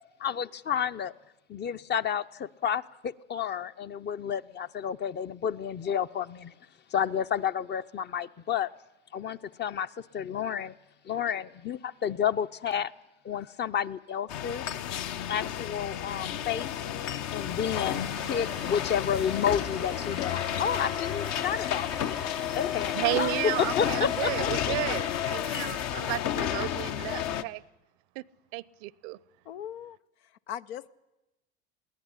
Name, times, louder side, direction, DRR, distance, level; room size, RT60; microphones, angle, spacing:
voice 1, 0.2-1.1 1.5-6.5 6.9-8.7 9.1-9.9 10.1-10.7 11.1-12.9 13.2-14.6 15.3-16.7 17.3-22.2 22.5-24.5, left 8 dB, 35° left, 12 dB, 0.8 m, -30 dB
sound 1, 14.3-27.4, left 10 dB, 55° left, 1.1 m, -32 dB
sound 2, 17.6-24.7, right 1 dB, ahead, 0.7 m, -44 dB
voice 2, 22.9-27.6 28.2-28.3 28.5-29.2, right 21 dB, 65° right, 22 dB, 0.7 m, -33 dB
voice 3, 29.4-30.9, left 10 dB, 75° left, 12 dB, 0.8 m, -40 dB
21.5 x 17.0 x 9.9 m, 0.99 s
hypercardioid pair, 80°, 31 cm